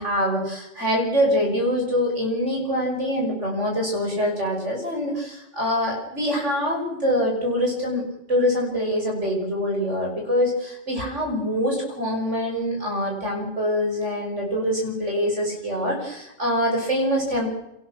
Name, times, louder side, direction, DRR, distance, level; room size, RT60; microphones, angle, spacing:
voice 1, 0.0-8.0 8.3-17.5, equal, 75° right, 0 dB, 6.4 m, -24 dB
26.5 x 19.0 x 6.2 m, 0.86 s
omnidirectional pair, 1.2 m